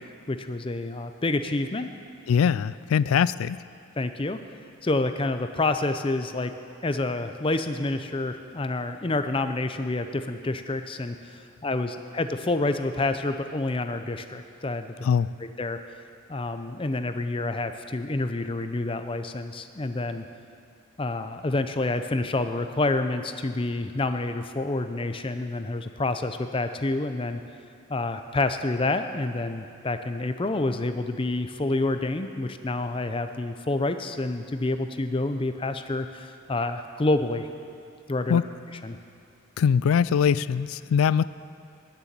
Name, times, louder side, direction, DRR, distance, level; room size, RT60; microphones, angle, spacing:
voice 1, 0.3-1.9 4.0-4.4 4.8-6.5 6.8-15.1 15.4-15.8 16.3-20.2 21.0-27.4 27.9-37.5 38.1-38.4 38.8-39.0, left 2 dB, 25° left, 9 dB, 0.5 m, -28 dB
voice 2, 2.3-3.6 15.0-15.3 38.3-38.4 39.6-41.2, left 7 dB, 80° left, 18 dB, 0.3 m, -22 dB
13.0 x 6.9 x 9.3 m, 2.5 s
head